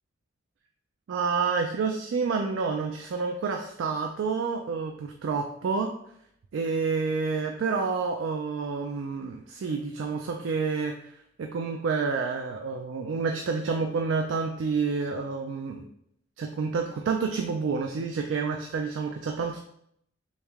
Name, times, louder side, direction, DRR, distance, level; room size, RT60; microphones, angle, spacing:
voice 1, 1.1-5.9 6.5-11.1 11.4-15.8 16.4-19.6, right 4 dB, 70° right, 3 dB, 0.3 m, -29 dB
3.5 x 3.2 x 3.4 m, 0.72 s
head